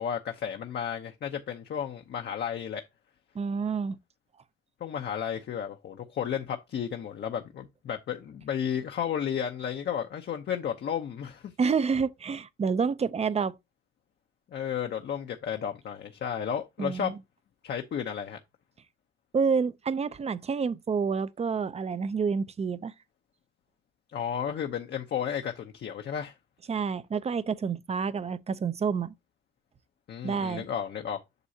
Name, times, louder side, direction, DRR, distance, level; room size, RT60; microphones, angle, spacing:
voice 1, 0.0-2.8 4.8-11.5 14.5-17.1 17.6-18.4 24.1-26.3 30.1-31.2, left 8 dB, 60° left, 0.9 m, -33 dB
voice 2, 3.3-4.0 11.6-13.6 16.8-17.1 19.3-22.9 26.7-29.1 30.2-30.6, right 5 dB, 30° right, 0.6 m, -28 dB
8.1 x 6.2 x 2.8 m
cardioid pair, 90°, 20 cm